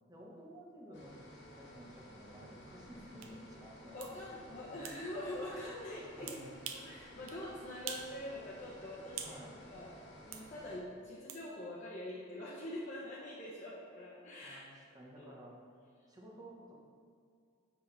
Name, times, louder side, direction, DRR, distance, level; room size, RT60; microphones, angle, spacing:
voice 1, 0.1-4.0 4.7-4.8 6.2-6.5 9.2-9.6 14.4-15.5 16.1-16.7, right 1 dB, 20° right, -3 dB, 1.3 m, -53 dB
sound 1, 0.9-10.8, equal, 55° left, 1.5 m, -55 dB
sound 2, 3.2-3.3 4.0-4.1 4.8-5.0 6.3-6.9 7.3-7.4 7.9-8.1 8.5-9.4 10.3-10.5 11.3-11.4, right 8 dB, 85° right, 0.7 m, -44 dB
voice 2, 3.9-6.4 6.7-9.4 9.7-9.9 10.2-14.6 15.2-15.3, left 1 dB, 35° left, -7 dB, 1.1 m, -44 dB
7.5 x 6.1 x 4.3 m, 2.3 s
head